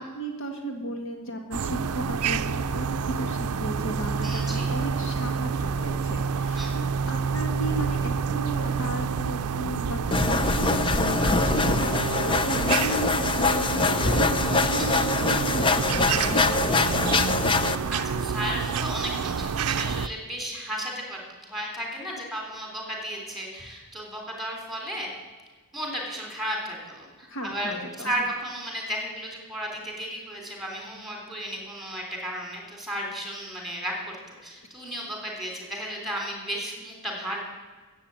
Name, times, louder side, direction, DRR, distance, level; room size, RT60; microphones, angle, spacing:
voice 1, 0.0-15.0 15.3-17.6 27.3-28.3, right 1 dB, 60° left, 3 dB, 1.6 m, -35 dB
sound 1, 1.5-20.1, right 6 dB, 80° right, 0.5 m, -28 dB
voice 2, 4.2-4.7 6.5-6.7 14.8-15.0 17.9-25.1 25.7-34.2 34.4-37.5, equal, ahead, 0 dB, 3.4 m, -34 dB
sound 2, 10.1-17.7, left 3 dB, 20° left, 0.6 m, -24 dB
14.5 x 7.9 x 8.9 m, 1.3 s
head